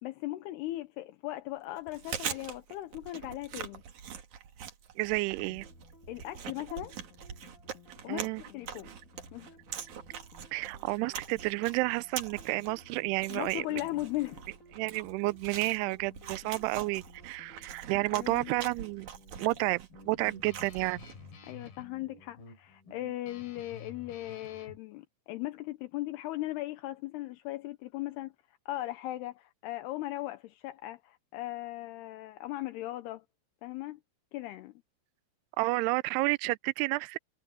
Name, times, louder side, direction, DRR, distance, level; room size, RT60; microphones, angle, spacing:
voice 1, 0.0-3.8 6.1-7.0 8.0-8.3 8.5-8.9 9.3-9.5 13.3-14.4 17.9-18.5 21.4-28.3 28.7-33.2 33.6-34.0 34.3-34.7, left 16 dB, 80° left, 2.8 m, -38 dB
Chewing mastication, 1.8-21.3, right 8 dB, 55° right, 2.8 m, -43 dB
voice 2, 5.0-5.7 8.1-8.4 10.5-13.8 14.8-19.1 19.4-21.1 35.6-37.2, right 23 dB, 80° right, 2.5 m, -31 dB
sound 1, 5.4-19.1, left 2 dB, 45° left, 1.0 m, -57 dB
Guitar, 19.0-24.8, left 4 dB, 60° left, 5.2 m, -51 dB
omnidirectional pair, 4.9 m